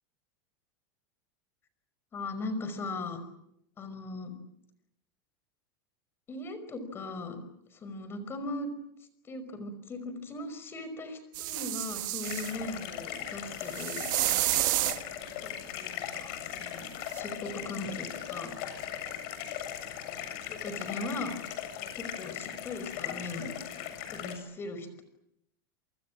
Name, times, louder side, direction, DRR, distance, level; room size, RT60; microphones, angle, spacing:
voice 1, 2.1-3.2 3.8-4.3 6.3-7.4 7.7-8.7 9.2-14.1 15.4-18.5 20.5-21.4 21.9-23.5 24.1-25.0, left 2 dB, 20° left, 11 dB, 5.4 m, -39 dB
sound 1, 11.3-12.5 13.7-15.0 17.2-17.3, right 19 dB, 60° right, 1.0 m, -30 dB
sound 2, 12.2-24.4, left 10 dB, 50° left, 7.3 m, -39 dB
27.5 x 26.0 x 7.5 m, 0.77 s
supercardioid pair, 160°, 12 cm